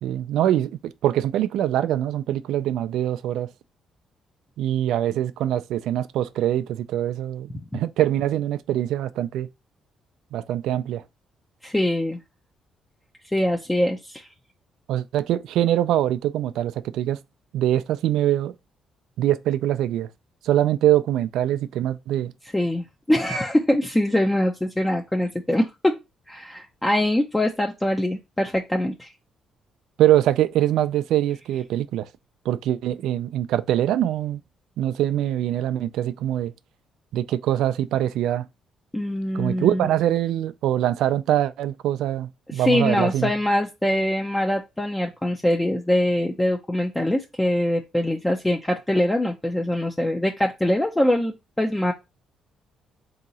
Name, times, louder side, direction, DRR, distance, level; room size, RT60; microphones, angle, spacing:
voice 1, 0.0-3.5 4.6-9.5 10.3-11.0 14.9-17.2 17.5-18.5 19.2-20.1 20.4-22.3 30.0-32.1 32.5-34.4 34.8-36.5 37.1-38.5 39.3-43.3, right 12 dB, 85° right, 0.3 m, -23 dB
voice 2, 11.6-12.2 13.3-14.3 22.5-26.0 26.3-29.1 38.9-39.9 42.5-51.9, left 1 dB, 10° left, 0.6 m, -23 dB
3.7 x 2.8 x 4.0 m
cardioid pair, 90°, 0 cm